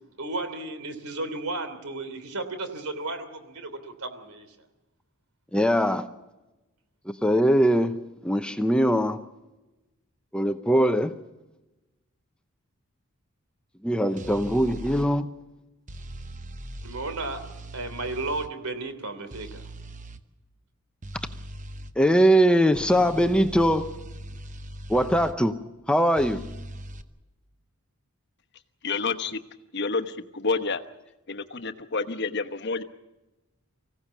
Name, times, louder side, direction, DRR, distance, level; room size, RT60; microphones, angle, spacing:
voice 1, 0.2-4.5 16.8-17.4 17.7-19.6, right 2 dB, 85° right, 9 dB, 3.2 m, -34 dB
voice 2, 5.5-6.1 7.2-9.2 10.3-11.1 13.8-15.3 22.0-23.9 24.9-25.6 25.9-26.5, equal, 5° left, 8 dB, 0.7 m, -21 dB
sound 1, 14.2-15.1 15.9-18.5 19.3-20.2 21.0-21.9 22.7-25.4 26.2-27.0, right 1 dB, 35° right, 0.9 m, -40 dB
voice 3, 28.8-29.4 29.7-30.8 31.3-32.8, left 4 dB, 50° left, 8 dB, 1.1 m, -29 dB
25.0 x 16.5 x 7.3 m, 1.0 s
head